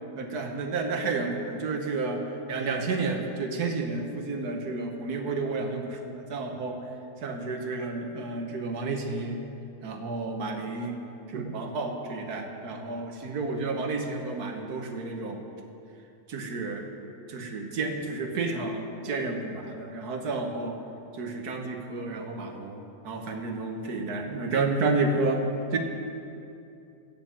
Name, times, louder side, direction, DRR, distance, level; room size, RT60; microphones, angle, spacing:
voice 1, 0.2-6.8 7.2-9.4 9.8-11.0 11.3-15.4 16.3-16.9 17.3-20.8 21.1-25.8, right 3 dB, 60° right, 4 dB, 1.6 m, -31 dB
16.0 x 5.8 x 7.4 m, 2.7 s
omnidirectional pair, 2.0 m